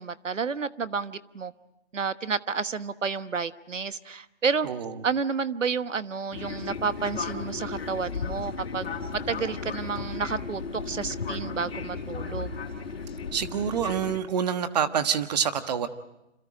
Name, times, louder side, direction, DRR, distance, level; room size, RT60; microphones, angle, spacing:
voice 1, 0.0-1.5 1.9-4.7 5.0-8.9 9.3-12.5, right 5 dB, 85° right, 13 dB, 1.3 m, -30 dB
Fixed-wing aircraft airplane, 6.3-14.2, left 5 dB, 55° left, 3.8 m, -35 dB
voice 2, 13.3-15.9, right 8 dB, 35° right, 10 dB, 1.4 m, -27 dB
29.5 x 27.5 x 5.0 m, 0.91 s
figure-of-eight pair, 155°, 37 cm